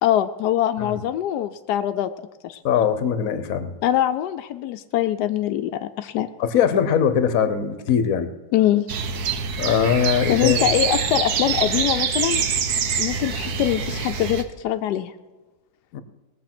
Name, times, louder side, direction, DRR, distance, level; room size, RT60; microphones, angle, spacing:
voice 1, 0.0-2.1 2.4-2.6 3.8-6.3 8.5-8.9 10.3-12.4 13.0-15.1, left 11 dB, 90° left, 9 dB, 1.2 m, -23 dB
voice 2, 2.6-3.7 6.4-8.3 9.6-10.7 15.9-16.0, left 7 dB, 60° left, 11 dB, 1.3 m, -21 dB
sound 1, 8.9-14.4, right 6 dB, 70° right, 1.4 m, -25 dB
19.0 x 7.3 x 6.0 m, 1.2 s
omnidirectional pair, 1.7 m